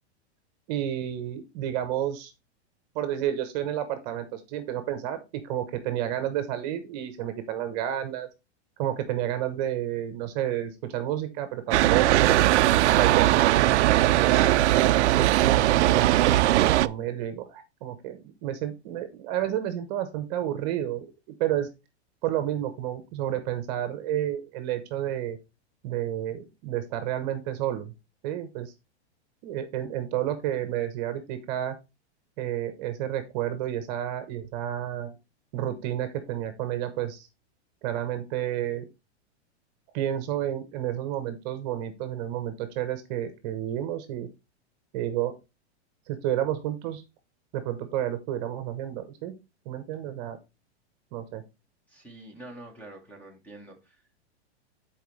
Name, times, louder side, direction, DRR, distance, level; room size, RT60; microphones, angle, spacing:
voice 1, 0.7-2.3 2.9-5.2 5.4-8.3 8.8-12.5 12.9-21.1 21.4-21.7 22.2-25.4 25.8-27.9 28.2-28.7 29.4-31.8 32.4-35.1 35.5-37.3 37.8-38.8 39.9-44.3 44.9-45.4 46.1-47.0 47.5-49.3 49.6-50.4 51.1-51.4, right 11 dB, 40° right, 1.0 m, -30 dB
sound 1, 11.7-16.9, right 15 dB, 85° right, 0.5 m, -20 dB
voice 2, 51.9-54.0, right 1 dB, 5° left, 1.2 m, -46 dB
11.0 x 4.5 x 3.2 m
supercardioid pair, 160°, 34 cm